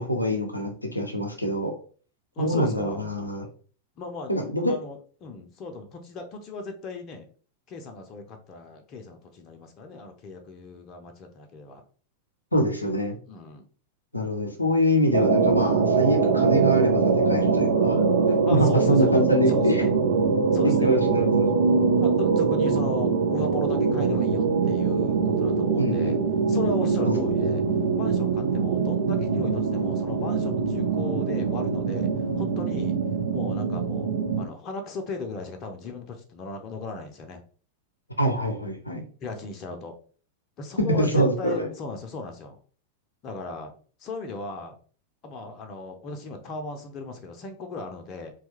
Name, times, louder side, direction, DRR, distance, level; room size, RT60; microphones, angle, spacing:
voice 1, 0.0-1.7 2.4-3.4 4.3-4.7 12.5-13.2 14.1-18.0 18.5-19.8 20.6-21.5 22.0-22.1 25.8-26.1 27.0-27.2 38.2-39.0 40.8-41.7, equal, 85° left, 3 dB, 0.5 m, -24 dB
voice 2, 2.4-3.0 4.0-4.3 4.7-7.3 7.7-11.8 13.3-13.7 18.5-19.1 19.5-19.9 20.5-20.9 22.0-26.2 26.5-27.6 27.9-32.1 32.4-33.0 33.3-34.1 34.4-37.4 39.2-39.9 40.6-42.6 43.2-43.7 44.0-44.7 45.2-48.3, left 3 dB, 35° left, 5 dB, 0.5 m, -36 dB
sound 1, 15.1-34.4, right 5 dB, 65° right, 0.5 m, -23 dB
3.0 x 2.3 x 2.9 m, 0.41 s
figure-of-eight pair, 90°, 0 cm